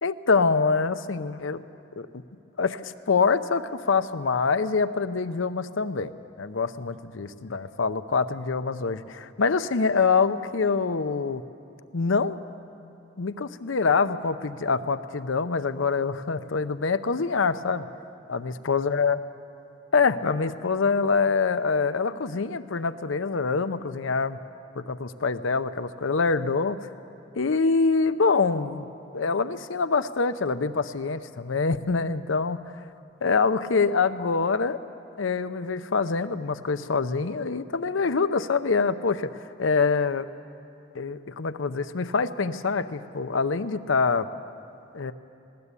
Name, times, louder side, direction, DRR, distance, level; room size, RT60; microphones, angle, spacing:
voice 1, 0.0-1.6 2.0-2.2 2.6-6.1 6.4-11.4 11.9-12.4 13.2-17.9 18.3-19.2 19.9-24.4 24.9-26.9 27.4-28.9 29.1-32.6 33.2-34.8 35.2-40.3 40.9-44.3 44.9-45.1, left 4 dB, 85° left, 12 dB, 0.7 m, -25 dB
20.0 x 18.0 x 8.3 m, 2.6 s
head